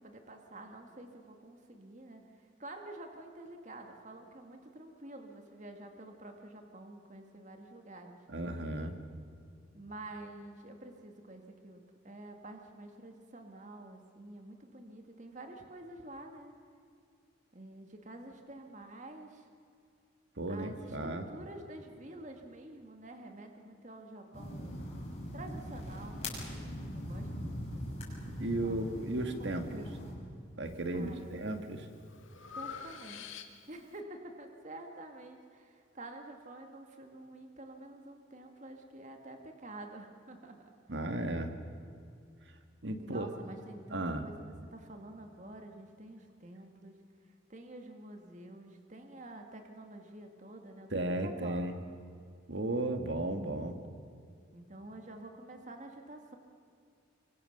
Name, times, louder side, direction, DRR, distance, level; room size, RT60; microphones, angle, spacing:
voice 1, 0.0-8.2 9.7-16.5 17.5-19.5 20.5-25.0 25.3-26.2 26.9-28.0 28.3-28.8 29.4-30.0 30.9-31.3 32.6-33.4 33.7-40.6 43.0-47.0 47.5-51.9 54.5-56.4, right 1 dB, 40° right, 4 dB, 2.0 m, -49 dB
voice 2, 8.3-8.9 20.4-21.3 28.4-29.9 30.6-31.9 40.9-41.5 42.8-43.3 43.9-44.2 50.9-51.7 52.5-53.8, right 1 dB, 65° right, 6 dB, 1.8 m, -35 dB
sound 1, 24.3-30.1, equal, 30° left, 6.6 m, -41 dB
Breathing, 30.6-31.1 31.6-33.9, left 6 dB, 85° left, 1.9 m, -47 dB
25.0 x 24.0 x 6.7 m, 2.3 s
head